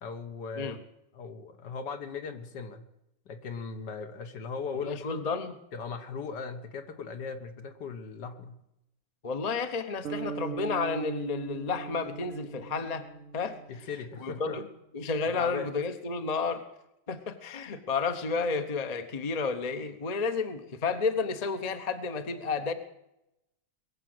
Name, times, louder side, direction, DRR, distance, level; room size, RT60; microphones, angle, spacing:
voice 1, 0.0-0.8 1.1-2.9 3.3-5.2 5.7-8.6 13.7-14.6 15.3-15.7, left 5 dB, 65° left, 7 dB, 1.8 m, -38 dB
voice 2, 4.8-5.5 9.2-13.0 13.3-13.9 14.2-14.7 14.9-16.6 17.1-22.7, left 4 dB, 30° left, 8 dB, 0.8 m, -31 dB
sound 1, 10.0-14.3, right 6 dB, 60° right, 0.9 m, -40 dB
22.0 x 7.6 x 7.9 m, 0.86 s
omnidirectional pair, 2.1 m